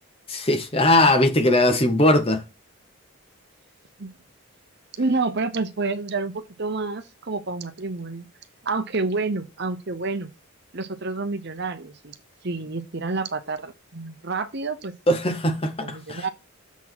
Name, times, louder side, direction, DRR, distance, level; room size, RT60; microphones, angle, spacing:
voice 1, 0.3-2.4 15.1-16.2, left 1 dB, 25° left, 1.0 m, -20 dB
voice 2, 5.0-8.3 8.6-10.3 10.7-12.1 12.4-14.9 15.8-16.3, right 3 dB, 50° right, 0.8 m, -28 dB
7.1 x 4.3 x 6.0 m
head